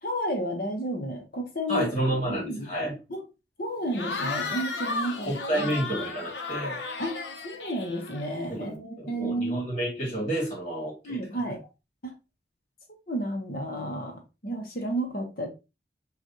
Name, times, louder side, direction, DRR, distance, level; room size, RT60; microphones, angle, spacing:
voice 1, 0.0-2.7 3.1-3.2 3.6-5.7 7.0-9.7 11.0-11.6 12.0-12.1 12.9-15.5, right 1 dB, 55° left, 0.9 m, -32 dB
voice 2, 1.7-2.9 5.3-6.8 8.5-11.2, right 1 dB, 30° left, 1.9 m, -30 dB
Cheering / Crowd, 3.9-8.5, left 3 dB, 80° left, 0.9 m, -34 dB
6.1 x 2.5 x 2.8 m
head